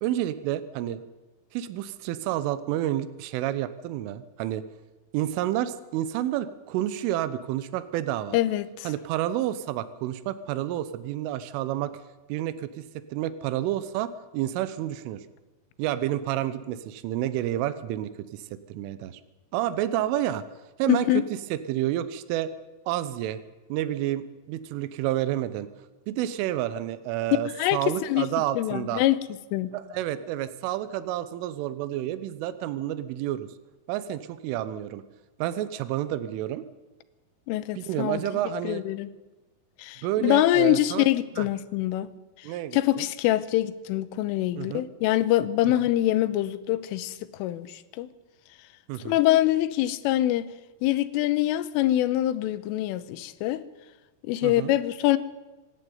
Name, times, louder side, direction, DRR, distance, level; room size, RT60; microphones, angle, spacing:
voice 1, 0.0-1.0 1.5-4.6 5.1-8.4 8.9-11.9 12.3-15.2 15.8-19.2 19.5-20.5 20.8-22.5 22.9-23.4 23.7-25.7 26.1-29.0 29.7-33.5 33.9-35.0 35.4-36.7 37.8-38.8 40.0-41.1 41.4-41.5 42.4-43.1 44.6-44.9 48.9-49.2 54.4-54.7, right 12 dB, 85° right, 3.5 m, -29 dB
voice 2, 8.3-8.9 20.9-21.2 27.6-28.3 28.6-29.2 29.5-29.7 37.5-38.2 38.7-39.1 39.8-42.1 42.7-48.1 49.1-50.5 50.8-53.6 54.3-55.2, left 14 dB, 90° left, 3.5 m, -24 dB
25.5 x 11.5 x 9.4 m
omnidirectional pair, 5.6 m